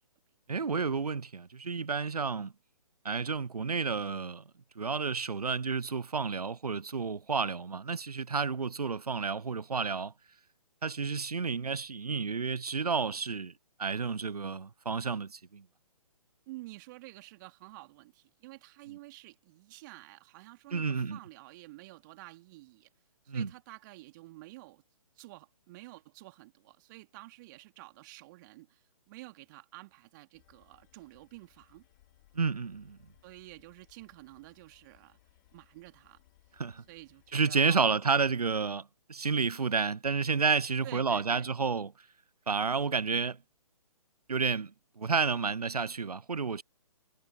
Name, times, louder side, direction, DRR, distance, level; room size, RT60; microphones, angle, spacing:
voice 1, 0.5-2.5 3.0-4.4 4.8-10.1 10.8-13.5 13.8-15.6 20.7-21.2 23.3-23.5 32.3-33.0 36.6-36.8 37.3-41.9 42.5-43.4 44.3-46.6, right 5 dB, 85° right, 0.7 m, -30 dB
voice 2, 16.5-22.9 23.2-24.8 25.2-31.8 33.2-35.2 35.5-36.2 36.9-38.2 40.8-41.5, right 20 dB, 30° right, 2.9 m, -50 dB
sound 1, 30.3-37.5, left 17 dB, 35° left, 4.0 m, -66 dB
figure-of-eight pair, 135°, 19 cm